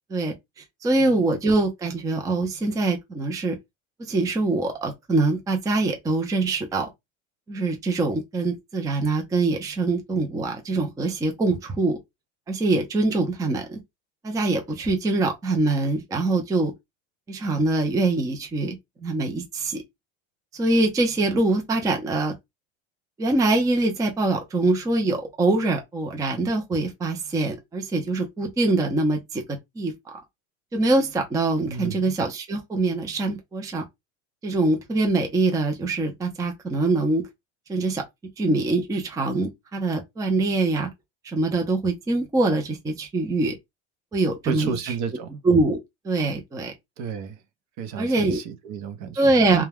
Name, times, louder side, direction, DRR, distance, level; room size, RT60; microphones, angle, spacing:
voice 1, 0.1-3.6 4.0-6.9 7.5-12.0 12.5-13.8 14.2-16.7 17.3-18.8 19.0-19.8 20.5-22.3 23.2-29.4 29.8-29.9 30.7-33.8 34.4-37.2 37.7-38.0 38.4-40.9 41.2-43.6 44.1-44.9 45.4-45.8 46.0-46.7 48.0-48.4 49.2-49.7, right 2 dB, 10° right, 0.5 m, -24 dB
voice 2, 31.7-32.1 44.5-45.4 47.0-47.4 47.8-49.7, right 7 dB, 50° right, 0.7 m, -32 dB
2.3 x 2.2 x 3.3 m
supercardioid pair, 110°, 38 cm